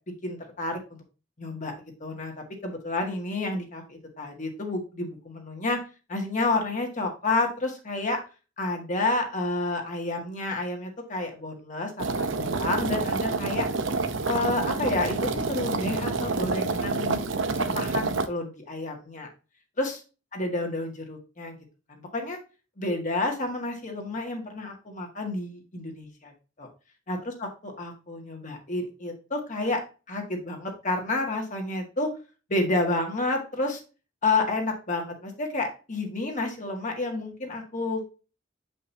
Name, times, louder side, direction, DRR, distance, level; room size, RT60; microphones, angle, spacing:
voice 1, 0.2-1.0 1.4-1.7 2.0-2.3 2.6-5.8 6.1-8.2 8.6-13.7 14.3-17.2 17.6-19.3 19.8-20.0 20.3-21.6 21.9-22.4 22.8-26.3 26.6-26.7 27.1-29.8 30.1-32.1 32.5-33.8 34.2-38.1, left 2 dB, 40° left, 2 dB, 1.8 m, -30 dB
sound 1, 12.0-18.3, right 3 dB, 75° right, 0.7 m, -28 dB
7.6 x 5.3 x 2.8 m, 0.32 s
head